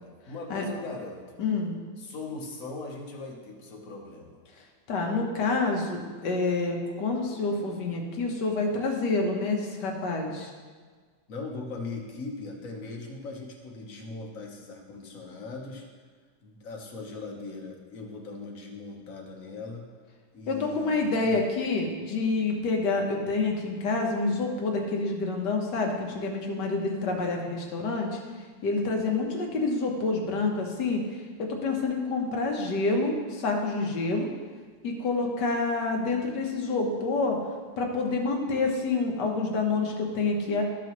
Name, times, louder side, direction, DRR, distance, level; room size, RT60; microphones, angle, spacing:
voice 1, 0.0-1.4 2.0-4.4 8.7-8.9 11.3-15.8 16.4-19.9 20.3-21.4, left 3 dB, 50° left, 0 dB, 1.4 m, -39 dB
voice 2, 1.4-1.8 4.9-10.5 20.5-28.2 28.6-31.0 31.4-34.3 34.8-37.4 37.8-40.6, left 3 dB, 70° left, 1 dB, 1.7 m, -28 dB
13.5 x 5.9 x 3.1 m, 1.5 s
omnidirectional pair, 1.9 m